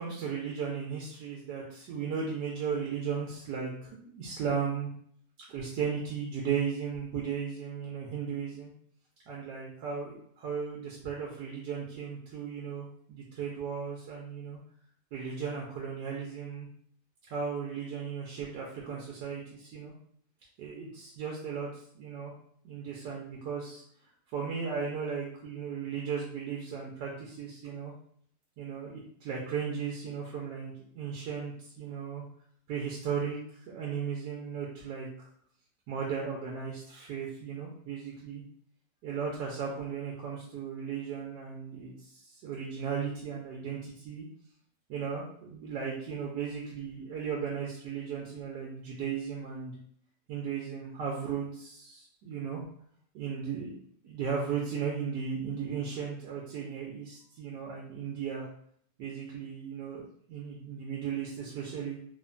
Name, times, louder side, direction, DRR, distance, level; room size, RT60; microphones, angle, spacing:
voice 1, 0.0-4.9 5.5-8.7 9.3-14.6 15.1-16.7 17.3-19.9 20.6-22.3 22.6-23.8 24.3-27.9 28.6-32.2 32.7-33.4 33.7-35.1 35.9-38.4 39.0-44.3 44.9-49.8 50.3-52.6 53.1-53.7 54.0-58.5 59.0-60.0 60.3-62.0, right 6 dB, 85° right, -3 dB, 1.2 m, -36 dB
3.2 x 2.1 x 2.4 m, 0.63 s
omnidirectional pair, 1.8 m